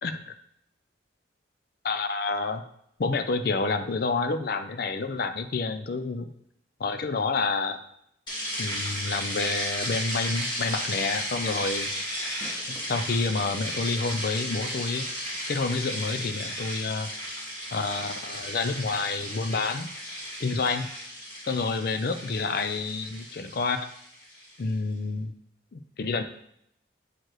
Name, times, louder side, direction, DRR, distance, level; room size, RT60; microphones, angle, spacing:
voice 1, 0.0-0.3 1.8-2.6 3.0-6.3 6.8-7.8 8.6-11.9 12.9-15.0 15.5-17.1 17.7-19.9 20.4-20.9 21.5-23.9 24.6-25.3 25.7-26.2, left 3 dB, 50° left, 9 dB, 0.4 m, -28 dB
sound 1, 8.3-24.5, equal, 25° left, 2.1 m, -34 dB
sound 2, 10.4-10.7 11.0-11.1 12.1-13.1 13.8-13.9 15.5-15.6, right 1 dB, 15° right, 0.4 m, -48 dB
7.6 x 4.6 x 3.1 m, 0.72 s
head